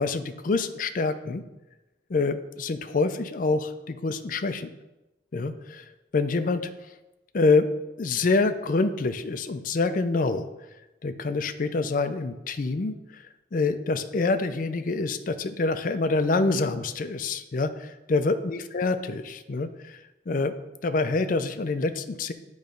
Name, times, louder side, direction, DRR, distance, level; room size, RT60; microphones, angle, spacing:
voice 1, 0.0-1.4 2.1-4.7 5.3-5.9 6.1-6.7 7.3-7.7 8.0-10.5 11.0-13.2 13.5-20.0 20.3-20.5 20.8-22.3, left 3 dB, 45° left, 9 dB, 0.4 m, -26 dB
8.9 x 3.2 x 5.1 m, 0.99 s
head